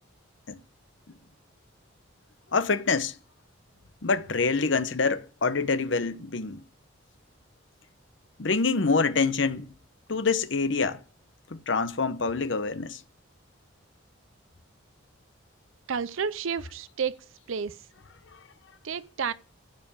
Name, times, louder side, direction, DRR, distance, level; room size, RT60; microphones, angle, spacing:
voice 1, 2.5-3.1 4.0-6.6 8.4-9.7 10.1-11.0 11.5-13.0, left 4 dB, 65° left, 0.9 m, -26 dB
voice 2, 15.9-17.1 17.5-17.8 18.8-19.3, right 6 dB, 75° right, 0.5 m, -30 dB
15.0 x 5.1 x 8.7 m
head